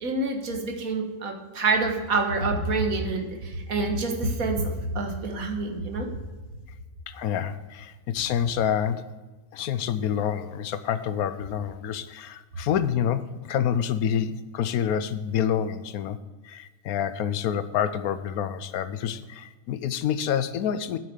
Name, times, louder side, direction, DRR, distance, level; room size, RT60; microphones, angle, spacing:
voice 1, 0.0-6.1, right 3 dB, 65° right, 3 dB, 1.9 m, -27 dB
voice 2, 7.1-9.1 9.5-16.2 16.4-21.0, left 9 dB, 75° left, 13 dB, 1.1 m, -27 dB
9.1 x 7.3 x 6.6 m, 1.3 s
omnidirectional pair, 1.6 m